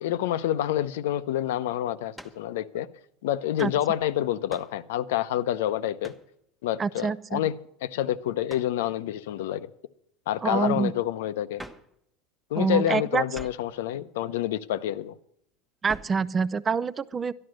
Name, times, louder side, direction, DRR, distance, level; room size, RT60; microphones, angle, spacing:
voice 1, 0.0-2.9 3.2-6.1 6.6-7.5 7.8-9.7 10.3-11.6 12.5-15.1, left 12 dB, 85° left, 14 dB, 0.7 m, -28 dB
sound 1, 2.1-2.5 3.6-3.8 4.5-4.8 6.0-6.3 8.5-8.8 11.6-11.9 13.3-13.7 15.9-16.2, equal, ahead, 0.9 m, -44 dB
voice 2, 6.8-7.4 10.4-10.9 12.6-13.2 15.8-17.3, right 5 dB, 20° right, 18 dB, 0.4 m, -26 dB
13.0 x 11.0 x 6.4 m, 0.72 s
supercardioid pair, 140°, 0 cm